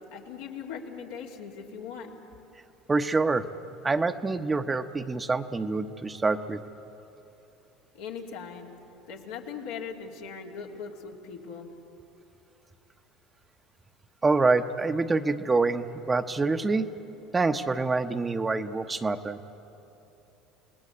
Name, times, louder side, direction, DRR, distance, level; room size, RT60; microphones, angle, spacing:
voice 1, 0.1-2.1 7.9-8.7 9.1-11.7, left 6 dB, 80° left, -1 dB, 2.7 m, -39 dB
voice 2, 2.9-3.5 3.8-6.6 14.2-16.9 17.3-19.4, right 3 dB, 20° right, 8 dB, 1.0 m, -26 dB
28.0 x 18.5 x 8.1 m, 3.0 s
hypercardioid pair, 85°, 0 cm